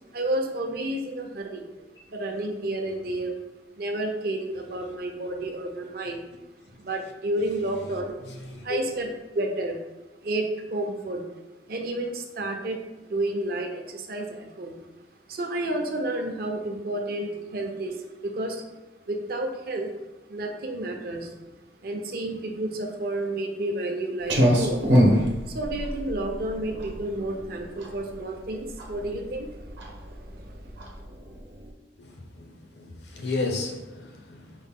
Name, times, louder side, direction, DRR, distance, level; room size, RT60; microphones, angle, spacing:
voice 1, 0.0-1.6 2.1-3.4 3.8-6.3 6.8-8.3 8.6-9.8 10.2-11.2 11.7-14.8 15.3-18.6 19.1-19.9 20.3-21.3 21.8-24.9 25.5-29.5 29.8-30.0, right 1 dB, 55° right, 3 dB, 0.5 m, -31 dB
Clock, 24.2-31.7, equal, 85° right, 0.9 m, -25 dB
voice 2, 32.0-34.5, left 3 dB, 70° left, 3 dB, 0.6 m, -33 dB
5.3 x 2.1 x 3.6 m, 1.1 s
head